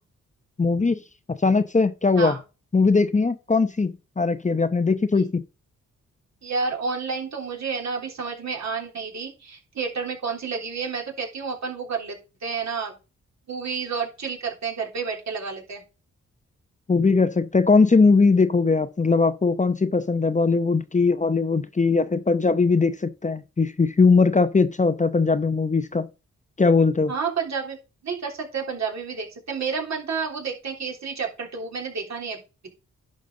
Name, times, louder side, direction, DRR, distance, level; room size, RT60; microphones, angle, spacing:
voice 1, 0.6-1.0 1.4-2.3 2.7-5.4 16.9-26.1 26.6-27.1, left 4 dB, 25° left, 0.8 m, -20 dB
voice 2, 6.4-12.9 13.5-15.8 27.1-27.8 28.0-32.4, right 5 dB, 65° right, 3.4 m, -30 dB
10.5 x 5.3 x 3.9 m
cardioid pair, 60°, 30 cm